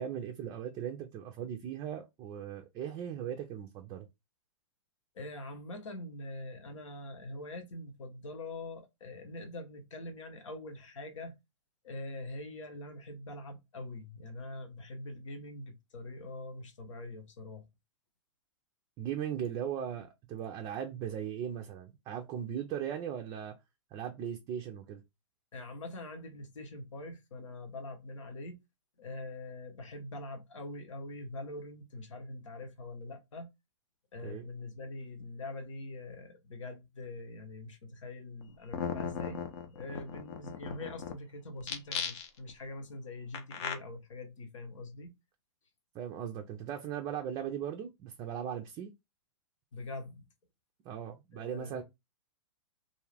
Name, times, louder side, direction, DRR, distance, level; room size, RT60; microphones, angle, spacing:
voice 1, 0.0-4.1 19.0-23.6 23.9-25.0 34.2-34.4 45.9-48.9 50.8-51.8, right 9 dB, 25° right, 0.4 m, -38 dB
voice 2, 5.1-11.3 11.8-17.6 25.5-28.6 29.0-33.5 34.1-39.4 39.7-45.1 49.7-50.2 51.3-51.8, left 2 dB, 80° left, 1.0 m, -43 dB
sound 1, 38.4-38.5 38.7-41.1 41.6-42.5 43.3-43.7, left 7 dB, 55° left, 0.7 m, -37 dB
2.6 x 2.4 x 3.2 m
hypercardioid pair, 125°, 16 cm